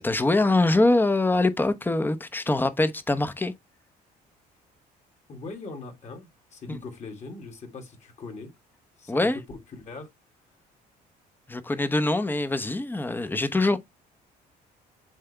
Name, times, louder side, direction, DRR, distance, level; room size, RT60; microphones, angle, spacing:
voice 1, 0.0-3.5 6.7-6.8 9.1-9.4 11.5-13.8, left 2 dB, 10° left, 1.0 m, -23 dB
voice 2, 5.3-8.5 9.0-10.1, left 3 dB, 45° left, 3.0 m, -41 dB
7.5 x 4.3 x 3.4 m
cardioid pair, 110°, 17 cm